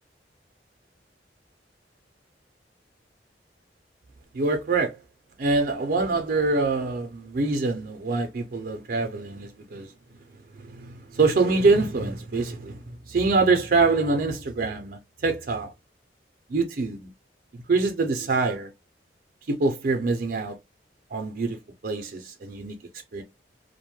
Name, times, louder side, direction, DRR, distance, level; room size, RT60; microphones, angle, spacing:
voice 1, 4.3-5.0 5.4-9.9 10.8-12.7 13.1-15.7 16.5-17.1 17.7-18.7 19.5-20.5 21.1-21.6 21.8-22.7 23.1-23.2, right 3 dB, 55° right, 0.5 m, -24 dB
2.5 x 2.1 x 2.9 m
head